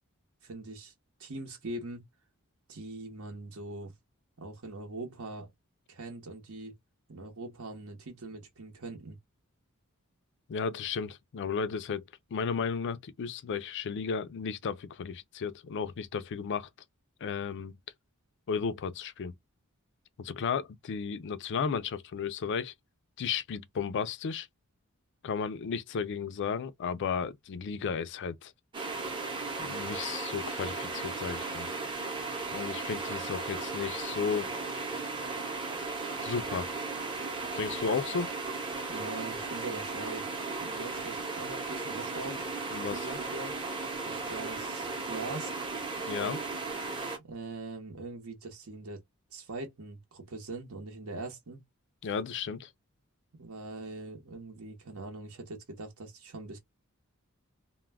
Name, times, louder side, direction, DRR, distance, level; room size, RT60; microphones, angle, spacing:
voice 1, 0.4-0.9 1.2-2.0 2.7-3.9 4.4-5.5 5.9-6.7 7.1-9.2 38.9-40.3 40.6-42.5 42.9-43.6 44.0-45.7 47.2-49.0 49.3-51.6 53.4-56.6, right 2 dB, 65° right, 0.8 m, -42 dB
voice 2, 10.5-12.0 12.3-16.7 17.2-17.7 18.5-19.3 20.2-22.7 23.2-24.5 25.2-28.5 29.6-31.7 32.5-34.5 36.2-36.7 37.6-38.3 42.7-43.2 46.1-46.4 52.0-52.7, left 6 dB, 55° left, 0.4 m, -34 dB
sound 1, 28.7-47.2, right 3 dB, 20° right, 0.7 m, -36 dB
2.2 x 2.1 x 3.3 m
head